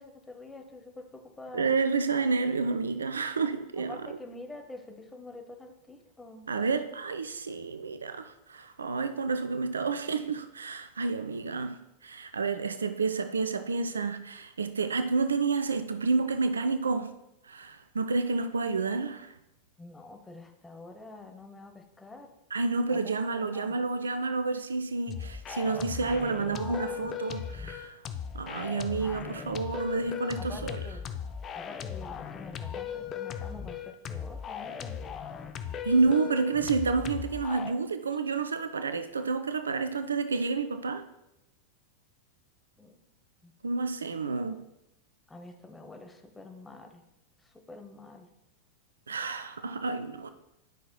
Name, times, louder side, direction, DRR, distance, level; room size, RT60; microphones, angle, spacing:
voice 1, 0.0-1.7 3.8-6.5 19.8-22.3 22.9-23.0 23.4-23.8 26.4-27.1 29.9-30.0 30.3-31.0 31.5-35.0 42.8-43.0 43.4-43.5 45.3-47.0 47.4-48.3, left 2 dB, 10° left, 0.9 m, -46 dB
voice 2, 1.5-4.0 6.5-17.1 17.4-19.3 22.5-28.0 28.3-30.8 35.8-41.0 43.6-44.6 49.1-50.3, right 4 dB, 70° right, 0.4 m, -29 dB
sound 1, 25.1-37.7, left 8 dB, 30° left, 0.4 m, -38 dB
11.5 x 5.8 x 2.2 m
figure-of-eight pair, 90°, 0 cm